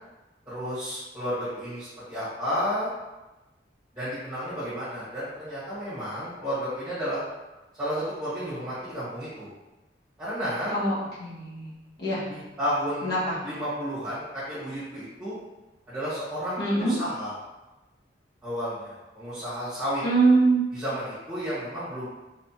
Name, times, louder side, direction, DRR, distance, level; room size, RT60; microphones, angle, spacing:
voice 1, 0.5-2.9 3.9-7.2 7.8-9.5 10.2-10.7 12.3-15.3 15.9-17.3 18.4-20.0 20.7-22.1, equal, 10° right, -13 dB, 1.4 m, -32 dB
voice 2, 11.2-11.7 12.0-12.2 13.0-13.3 16.6-16.9 20.0-20.6, right 3 dB, 60° left, -9 dB, 1.4 m, -23 dB
3.6 x 3.2 x 2.9 m, 1.1 s
head